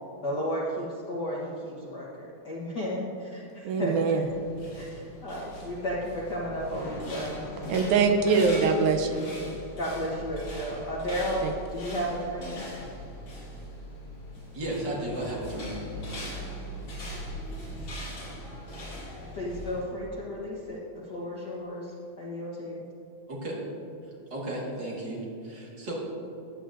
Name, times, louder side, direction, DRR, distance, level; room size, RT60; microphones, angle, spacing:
voice 1, 0.2-4.3 4.7-7.4 8.2-8.4 9.1-9.4 9.8-12.6 19.3-20.8 21.1-22.8, equal, 90° left, -6 dB, 0.9 m, -33 dB
voice 2, 3.7-4.3 7.7-9.2 11.4-11.5, right 5 dB, 75° right, 5 dB, 1.9 m, -23 dB
sound 1, 4.2-19.8, left 1 dB, 40° left, 3.1 m, -40 dB
voice 3, 14.5-15.8 23.3-23.6 24.3-25.9, right 1 dB, 45° right, -4 dB, 1.8 m, -34 dB
15.0 x 9.0 x 2.5 m, 2.7 s
omnidirectional pair, 3.6 m